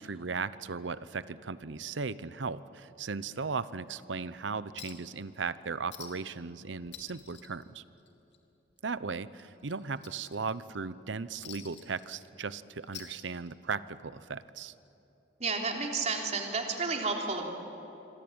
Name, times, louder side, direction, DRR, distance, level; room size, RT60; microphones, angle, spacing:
voice 1, 0.0-7.8 8.8-14.7, right 4 dB, 85° right, 16 dB, 0.8 m, -37 dB
Chink clink, 4.8-5.1 5.4-5.5 5.9-6.4 6.7-8.4 8.7-8.9 9.3-10.8 11.4-12.5 12.8-13.7 14.8-14.9, left 9 dB, 80° left, 2.7 m, -49 dB
voice 2, 15.4-17.5, right 4 dB, 40° right, 1 dB, 3.5 m, -31 dB
26.0 x 25.5 x 8.9 m, 3.0 s
head